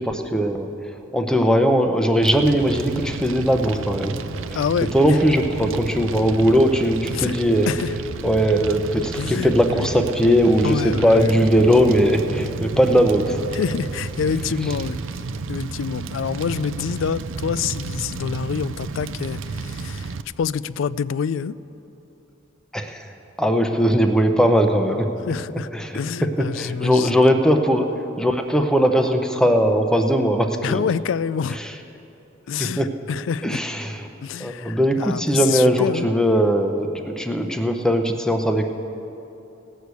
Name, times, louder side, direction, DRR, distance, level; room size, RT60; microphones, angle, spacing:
voice 1, 0.0-4.1 4.5-4.6 4.9-7.7 8.2-13.4 22.7-25.1 25.5-26.0 26.5-30.8 32.6-32.9 33.4-34.0 34.4-38.7, equal, 5° left, 5 dB, 0.7 m, -19 dB
Fire, 2.2-20.2, right 4 dB, 70° right, 0.5 m, -32 dB
voice 2, 4.5-5.2 7.1-7.4 7.7-8.0 9.2-9.9 10.6-11.4 13.5-15.0 15.5-21.6 25.3-25.7 25.9-27.3 30.6-31.6 32.5-33.6 34.2-36.1, left 7 dB, 70° left, 18 dB, 0.3 m, -27 dB
17.5 x 6.4 x 8.2 m, 2.9 s
head